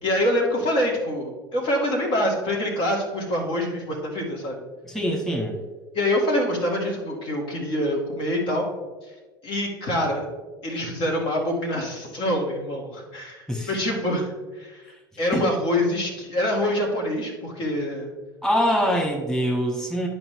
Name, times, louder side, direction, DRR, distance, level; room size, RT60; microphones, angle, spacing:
voice 1, 0.0-4.6 5.9-8.6 9.4-10.3 10.6-14.8 15.2-18.1, left 1 dB, 50° left, -1 dB, 2.1 m, -25 dB
voice 2, 4.8-5.6 13.5-13.7 15.3-15.6 18.4-20.1, equal, 5° left, -1 dB, 1.8 m, -24 dB
11.0 x 5.4 x 3.3 m, 1.3 s
figure-of-eight pair, 70°, 11 cm